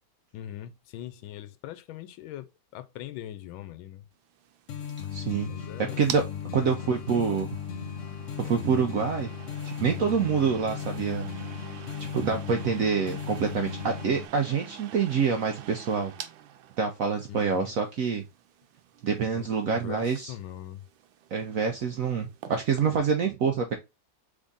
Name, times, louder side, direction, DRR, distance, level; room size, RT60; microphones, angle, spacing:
voice 1, 0.3-4.1 5.5-6.1 6.4-7.4 17.3-17.7 19.4-20.8, left 12 dB, 80° left, 1.4 m, -41 dB
sound 1, 4.2-23.0, right 10 dB, 90° right, 1.4 m, -47 dB
sound 2, 4.7-14.3, left 7 dB, 65° left, 0.7 m, -36 dB
voice 2, 5.1-5.5 5.8-6.2 6.5-7.5 8.4-9.3 9.6-11.3 12.1-16.1 16.8-18.2 19.0-20.3 21.3-23.8, right 6 dB, 70° right, 0.8 m, -26 dB
3.6 x 3.6 x 3.9 m
omnidirectional pair, 2.1 m